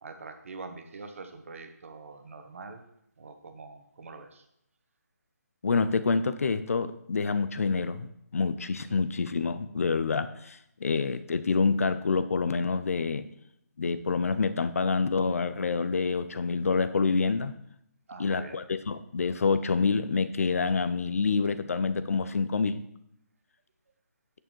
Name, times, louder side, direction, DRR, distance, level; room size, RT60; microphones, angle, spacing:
voice 1, 0.0-2.8 3.2-4.4 8.9-9.0 18.1-18.6, right 3 dB, 50° right, 6 dB, 1.3 m, -44 dB
voice 2, 5.6-13.3 13.8-17.5 18.2-22.8, left 4 dB, 55° left, 12 dB, 0.6 m, -27 dB
8.7 x 6.5 x 4.5 m, 0.76 s
hypercardioid pair, 165°, 9 cm